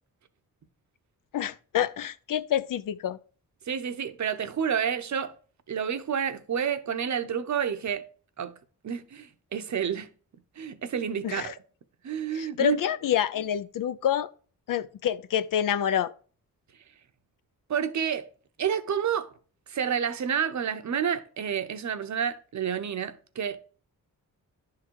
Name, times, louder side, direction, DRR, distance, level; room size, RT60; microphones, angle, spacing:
voice 1, 1.3-3.2 11.2-11.5 12.3-14.3 14.7-16.1, left 10 dB, 70° left, 0.5 m, -27 dB
voice 2, 3.7-5.3 5.7-8.0 8.4-8.5 8.8-10.1 10.6-11.5 12.0-12.8 17.7-18.3 18.6-19.3 19.7-23.6, right 8 dB, 55° right, 0.8 m, -29 dB
10.5 x 3.8 x 4.6 m
wide cardioid pair, 105°, 34 cm